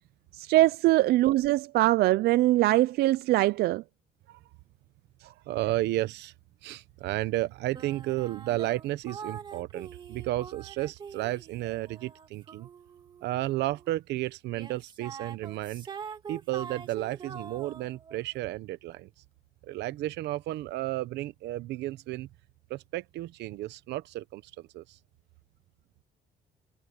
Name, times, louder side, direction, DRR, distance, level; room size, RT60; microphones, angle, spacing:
voice 1, 0.3-3.8, right 17 dB, 65° right, 0.4 m, -22 dB
voice 2, 5.2-6.3 6.6-12.7 13.2-15.9 16.3-19.1 19.6-22.3 22.7-25.0, right 16 dB, 80° right, 1.0 m, -33 dB
sound 1, 7.7-14.0 14.5-18.2, right 6 dB, 25° right, 2.4 m, -44 dB
cardioid pair, 175°, 17 cm